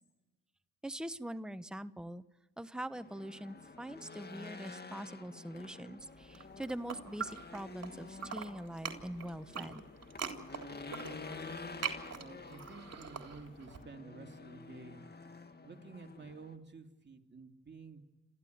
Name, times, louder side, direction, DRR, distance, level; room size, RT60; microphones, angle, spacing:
voice 1, 0.8-2.2 2.6-9.8, right 1 dB, ahead, 12 dB, 1.1 m, -43 dB
Race car auto racing / Engine, 2.9-16.6, left 4 dB, 30° left, 1.9 m, -49 dB
sound 1, 6.2-7.9 8.2-13.8, right 6 dB, 45° right, 3.5 m, -42 dB
voice 2, 12.2-15.0 15.6-18.0, right 4 dB, 30° right, 4 dB, 2.9 m, -51 dB
27.5 x 14.5 x 9.4 m, 1.2 s
supercardioid pair, 65°, 34 cm